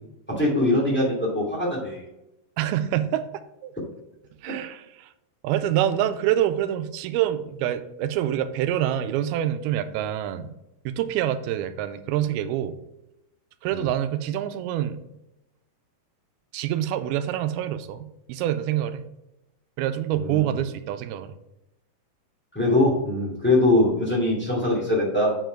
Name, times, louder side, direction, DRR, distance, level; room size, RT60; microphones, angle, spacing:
voice 1, 0.3-2.0 13.7-13.8 20.1-20.6 22.5-25.4, left 1 dB, 5° left, -4 dB, 1.2 m, -22 dB
voice 2, 2.6-3.7 4.4-5.1 5.4-10.5 10.9-12.8 13.6-15.0 16.5-19.0 19.8-21.3, right 11 dB, 85° right, 11 dB, 2.5 m, -26 dB
8.2 x 4.5 x 4.5 m, 0.91 s
omnidirectional pair, 4.4 m